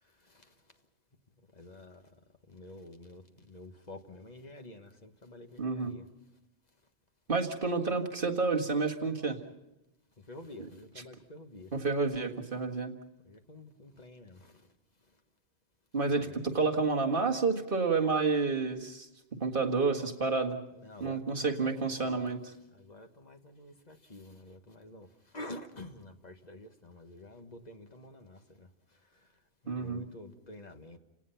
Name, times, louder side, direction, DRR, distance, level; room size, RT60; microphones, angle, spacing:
voice 1, 0.2-0.5 1.5-2.1 2.5-6.1 10.2-11.7 13.2-14.7 16.2-16.5 20.7-22.3 22.7-29.4 29.7-31.0, left 1 dB, 40° left, 1.6 m, -49 dB
voice 2, 5.6-5.9 7.3-9.4 11.7-12.9 15.9-19.1 19.4-20.6 21.0-22.4 29.7-30.0, right 4 dB, 50° right, 2.0 m, -29 dB
29.5 x 18.0 x 5.8 m
omnidirectional pair, 1.1 m